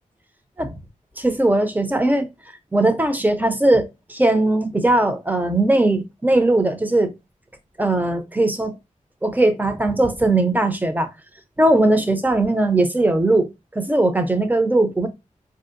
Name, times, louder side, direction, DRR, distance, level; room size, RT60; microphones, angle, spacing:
voice 1, 1.2-2.3 2.7-7.1 7.8-8.8 9.2-11.1 11.6-15.1, right 2 dB, 10° right, 0.6 m, -19 dB
4.8 x 2.7 x 2.5 m
wide cardioid pair, 95°, 14 cm